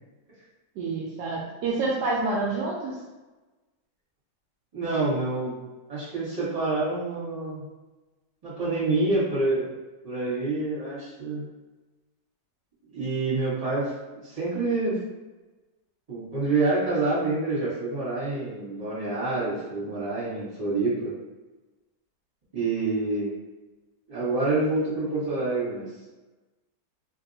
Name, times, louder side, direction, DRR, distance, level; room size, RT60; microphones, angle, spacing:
voice 1, 0.8-3.0, right 3 dB, 75° right, -3 dB, 1.1 m, -28 dB
voice 2, 4.7-5.6 5.9-7.6 8.4-9.7 10.0-11.4 12.9-13.9 14.2-15.0 16.1-21.1 22.5-23.3 24.1-25.9, right 3 dB, 20° right, -10 dB, 1.5 m, -27 dB
3.1 x 2.6 x 2.7 m, 1.2 s
omnidirectional pair, 1.8 m